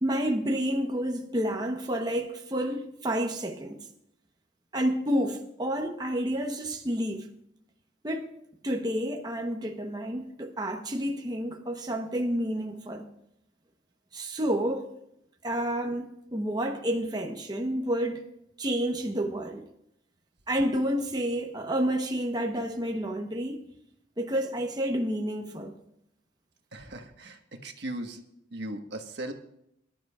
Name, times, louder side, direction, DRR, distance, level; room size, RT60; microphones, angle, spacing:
voice 1, 0.0-3.8 4.7-7.3 8.0-8.3 8.6-13.1 14.1-14.9 15.4-18.3 18.6-19.7 20.5-23.6 24.2-25.8, equal, 25° right, 0.9 m, -29 dB
voice 2, 26.7-28.2 28.5-29.3, right 1 dB, 70° right, 1.3 m, -38 dB
22.5 x 12.0 x 2.4 m
head